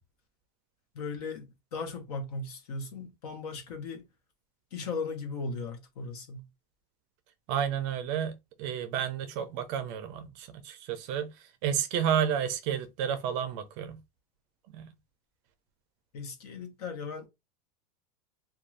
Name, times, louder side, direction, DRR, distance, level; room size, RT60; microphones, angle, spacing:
voice 1, 0.9-4.1 4.7-6.5 16.1-17.3, left 4 dB, 80° left, 1.0 m, -37 dB
voice 2, 7.5-14.0 14.7-14.9, right 9 dB, 40° right, 0.4 m, -31 dB
2.5 x 2.3 x 3.1 m
supercardioid pair, 160°, 20 cm